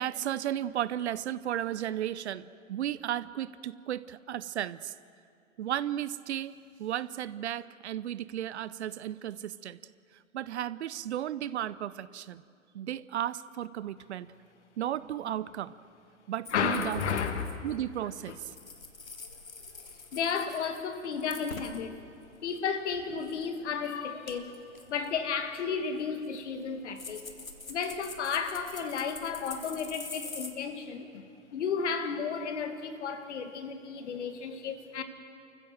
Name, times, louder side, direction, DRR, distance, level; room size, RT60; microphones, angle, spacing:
voice 1, 0.0-4.9 5.6-9.8 10.3-12.4 12.7-14.3 14.8-15.8 16.3-17.0 17.6-18.5, right 11 dB, 55° right, 18 dB, 0.7 m, -34 dB
sound 1, 16.5-18.0 18.3-21.9 22.2-23.5 23.8-23.9 24.3-30.5, left 4 dB, 85° left, 1.9 m, -46 dB
voice 2, 16.5-17.7 18.3-18.4 20.1-22.0 22.4-24.5 24.9-27.2 27.7-35.0, left 6 dB, 60° left, 7 dB, 2.2 m, -33 dB
29.0 x 15.0 x 7.7 m, 2.5 s
figure-of-eight pair, 110°, 39 cm